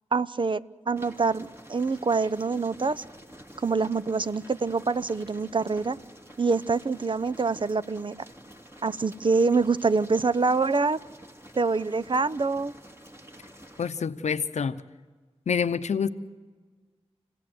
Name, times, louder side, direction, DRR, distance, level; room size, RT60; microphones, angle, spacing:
voice 1, 0.1-3.0 3.6-6.0 6.4-8.2 8.8-11.0 11.6-12.7, right 4 dB, 45° right, 16 dB, 0.6 m, -25 dB
sound 1, 0.9-13.9, equal, 20° right, 2.6 m, -49 dB
voice 2, 13.8-14.8 15.5-16.1, left 6 dB, 85° left, 12 dB, 0.7 m, -27 dB
28.0 x 16.5 x 7.8 m, 1.4 s
cardioid pair, 45°, 11 cm